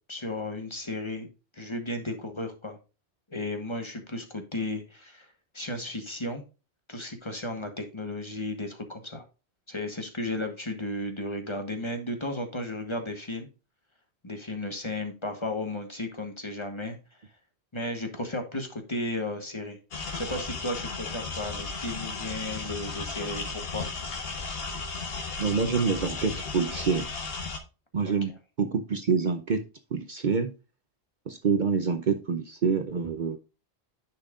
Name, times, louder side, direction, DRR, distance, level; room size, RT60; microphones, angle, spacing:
voice 1, 0.1-1.3 1.5-2.8 3.3-6.4 6.9-9.3 9.7-13.5 14.2-17.3 17.7-19.8 20.1-23.9 28.0-28.1, left 1 dB, 25° left, 1.2 m, -34 dB
sound 1, 19.9-27.6, left 4 dB, 60° left, 1.3 m, -35 dB
voice 2, 25.4-27.1 27.9-28.3 28.6-29.6 29.9-30.5 31.3-33.4, right 5 dB, 50° right, 0.7 m, -26 dB
10.0 x 5.7 x 2.4 m
omnidirectional pair, 1.1 m